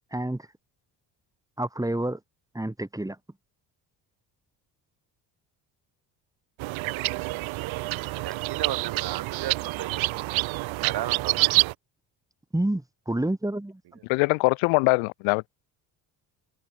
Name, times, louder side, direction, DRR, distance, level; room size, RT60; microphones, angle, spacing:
voice 1, 0.1-0.4 1.6-2.2 2.5-3.2 12.5-13.8, right 1 dB, 5° right, 3.1 m, -28 dB
sound 1, 6.6-11.7, right 20 dB, 75° right, 2.8 m, -27 dB
voice 2, 8.2-10.0 10.3-10.5 10.8-11.6, right 13 dB, 55° right, 1.1 m, -34 dB
voice 3, 14.0-15.5, left 30 dB, 85° left, 1.5 m, -22 dB
supercardioid pair, 70°, 47 cm